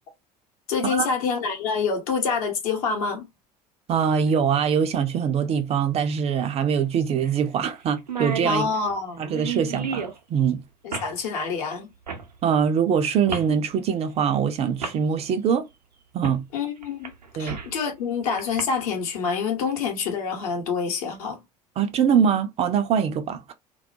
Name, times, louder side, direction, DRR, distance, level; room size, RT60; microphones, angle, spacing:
voice 1, 0.7-3.3 8.4-9.2 10.8-11.9 16.5-17.1 17.4-21.4, left 5 dB, 60° left, 0.9 m, -26 dB
voice 2, 3.9-8.7 9.2-10.6 12.4-15.7 16.1-16.4 17.4-17.6 21.8-23.5, right 7 dB, 30° right, 0.4 m, -23 dB
sound 1, 4.3-4.4 6.1-6.2 6.6-6.7 7.2-7.4 7.7-7.8 8.0-10.2 10.9-11.1 12.1-12.3 13.3-13.5 14.3-14.4 14.8-15.0 16.2-16.4 16.8-17.8 18.4-18.6, right 5 dB, 85° right, 0.6 m, -32 dB
2.3 x 2.1 x 2.6 m
figure-of-eight pair, 70°, 21 cm